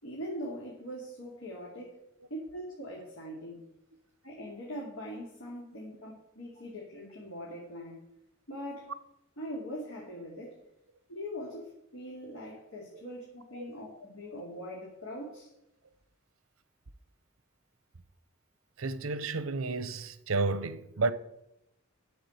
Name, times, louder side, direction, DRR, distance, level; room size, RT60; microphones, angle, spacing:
voice 1, 0.0-2.0 2.3-3.6 4.2-8.0 8.5-8.9 9.4-10.6 11.1-15.5, equal, 85° left, 2.8 m, -42 dB
voice 2, 18.8-21.1, right 3 dB, 80° right, 0.8 m, -31 dB
9.8 x 7.3 x 7.9 m
head